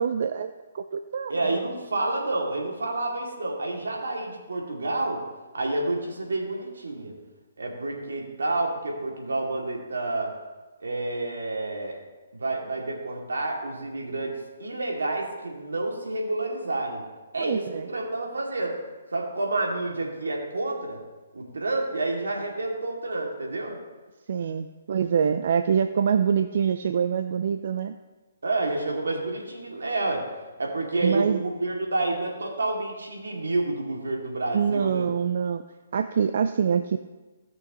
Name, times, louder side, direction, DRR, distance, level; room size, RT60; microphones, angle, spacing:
voice 1, 0.0-1.3 17.4-17.9 24.3-27.9 31.0-31.4 34.5-35.6 35.9-37.0, right 7 dB, 60° right, 8 dB, 0.5 m, -25 dB
voice 2, 1.3-5.2 5.5-7.1 7.6-10.3 10.8-12.0 12.3-17.0 17.3-18.8 19.1-21.0 21.3-23.8 28.4-30.3 30.6-35.1, right 2 dB, 85° right, -1 dB, 2.4 m, -29 dB
17.5 x 6.2 x 3.0 m, 1.2 s
hypercardioid pair, 145°, 0 cm